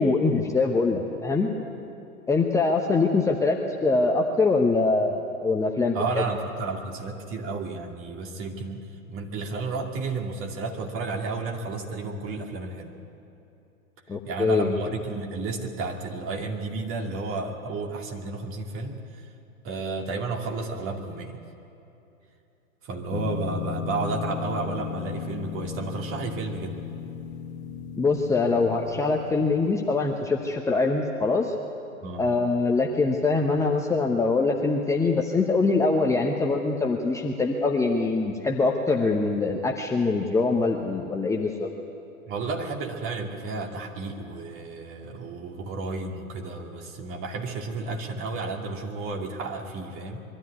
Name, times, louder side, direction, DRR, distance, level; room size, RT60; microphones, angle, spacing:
voice 1, 0.0-1.5 2.3-6.2 14.1-14.7 28.0-31.5 32.2-41.7, left 3 dB, 5° left, 0 dB, 0.9 m, -23 dB
voice 2, 5.9-12.9 14.2-19.3 19.6-21.4 22.8-26.8 32.0-32.3 42.3-50.2, right 3 dB, 30° right, 2 dB, 2.4 m, -32 dB
sound 1, 23.1-30.3, left 9 dB, 45° left, 1.6 m, -36 dB
22.5 x 13.0 x 9.6 m, 2.9 s
figure-of-eight pair, 110°, 42 cm